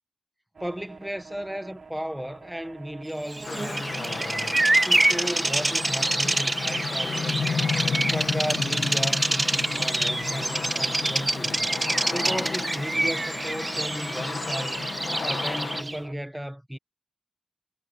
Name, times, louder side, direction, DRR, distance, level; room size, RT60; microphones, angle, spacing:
sound 1, 0.5-16.1, right 4 dB, 60° right, 6.9 m, -47 dB
voice 1, 0.6-4.6 4.8-7.7 8.1-11.7 12.1-14.9 15.2-16.8, equal, 5° right, 1.5 m, -35 dB
Bird vocalization bird call bird song, 3.3-16.0, right 2 dB, 25° right, 0.6 m, -26 dB
sound 2, 3.4-15.8, left 5 dB, 80° left, 1.6 m, -33 dB
wide cardioid pair, 80°, 0 cm